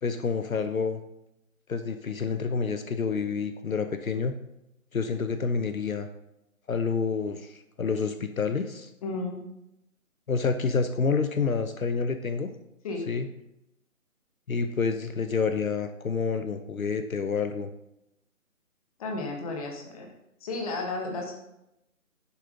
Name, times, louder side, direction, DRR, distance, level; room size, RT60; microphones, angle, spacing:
voice 1, 0.0-1.0 1.7-4.3 4.9-6.1 6.7-8.9 10.3-12.5 13.1-13.3 14.5-17.7, left 5 dB, 75° left, 9 dB, 0.9 m, -28 dB
voice 2, 9.0-9.4 12.8-13.0 19.0-20.1 20.4-21.3, left 3 dB, 25° left, 2 dB, 1.6 m, -33 dB
11.0 x 7.0 x 3.9 m, 0.85 s
figure-of-eight pair, 150°, 42 cm